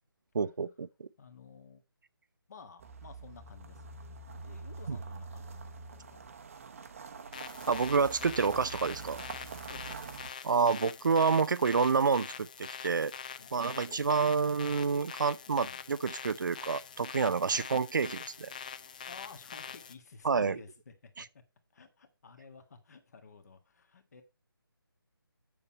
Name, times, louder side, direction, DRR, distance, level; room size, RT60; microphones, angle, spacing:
voice 1, 0.3-1.1 4.9-5.0 7.7-9.2 10.4-13.1 13.5-18.5 20.2-20.6 21.2-21.3, right 5 dB, 55° right, 0.4 m, -28 dB
voice 2, 1.2-1.8 2.5-4.1 4.4-6.2 9.7-10.5 13.4-14.4 15.5-15.8 17.5-17.7 19.1-21.4 21.7-24.2, left 5 dB, 45° left, 1.7 m, -54 dB
sound 1, 2.8-10.3, right 4 dB, 35° right, 0.8 m, -45 dB
sound 2, 7.3-19.9, left 7 dB, 20° left, 0.5 m, -45 dB
7.5 x 6.9 x 4.2 m
figure-of-eight pair, 160°, 13 cm